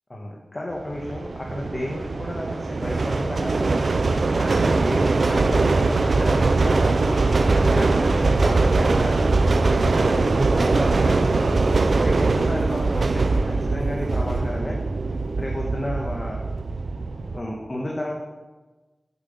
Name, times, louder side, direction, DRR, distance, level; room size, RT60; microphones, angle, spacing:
voice 1, 0.1-4.0 4.4-9.3 9.7-11.6 12.0-14.8 15.4-16.4 17.3-18.1, left 1 dB, 30° left, -1 dB, 1.5 m, -32 dB
sound 1, 0.9-17.4, right 3 dB, 60° right, 0.6 m, -21 dB
9.1 x 8.0 x 5.5 m, 1.2 s
wide cardioid pair, 80°, 0 cm